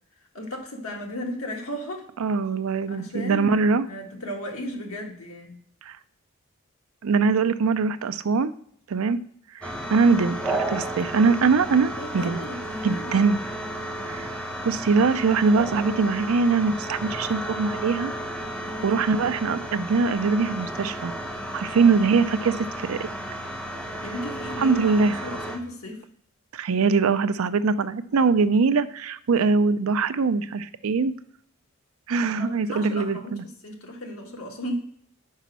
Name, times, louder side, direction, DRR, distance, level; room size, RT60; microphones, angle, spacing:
voice 1, 0.3-2.1 2.9-5.5 12.0-13.2 18.6-19.0 24.0-26.0 32.2-34.8, left 1 dB, 90° left, 1 dB, 1.7 m, -35 dB
voice 2, 2.2-3.8 5.8-6.0 7.0-8.5 8.9-9.2 9.5-12.4 12.8-13.4 14.1-18.1 18.8-21.1 21.5-23.1 24.6-25.3 26.5-31.1 32.1-33.4, right 4 dB, 80° right, 13 dB, 0.5 m, -22 dB
sound 1, 9.6-25.6, right 1 dB, 5° left, 0.9 m, -33 dB
5.6 x 5.0 x 6.1 m, 0.66 s
head